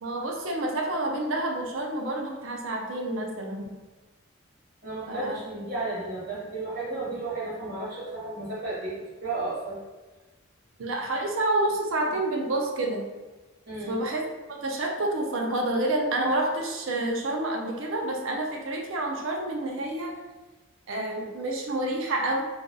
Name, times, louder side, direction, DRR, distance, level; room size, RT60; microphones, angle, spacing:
voice 1, 0.0-3.7 5.1-5.4 10.8-13.0 13.9-14.2 14.5-20.1 20.9-22.4, right 1 dB, 70° right, 1 dB, 0.5 m, -28 dB
voice 2, 4.8-8.9 9.2-9.8 13.7-14.0, right 2 dB, 40° right, -8 dB, 1.3 m, -33 dB
2.5 x 2.3 x 3.8 m, 1.2 s
head